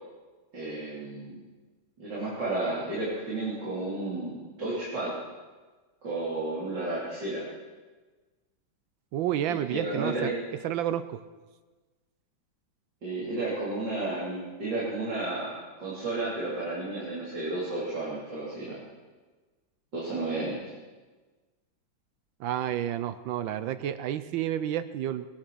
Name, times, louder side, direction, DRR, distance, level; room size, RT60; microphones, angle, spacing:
voice 1, 0.5-1.3 2.0-5.1 6.0-7.4 9.5-10.3 13.0-18.8 19.9-20.6, right 2 dB, 65° right, -8 dB, 4.2 m, -32 dB
voice 2, 9.1-10.3 10.6-11.2 22.4-25.3, right 11 dB, 80° right, 12 dB, 1.4 m, -30 dB
21.5 x 10.0 x 6.2 m, 1.3 s
omnidirectional pair, 2.1 m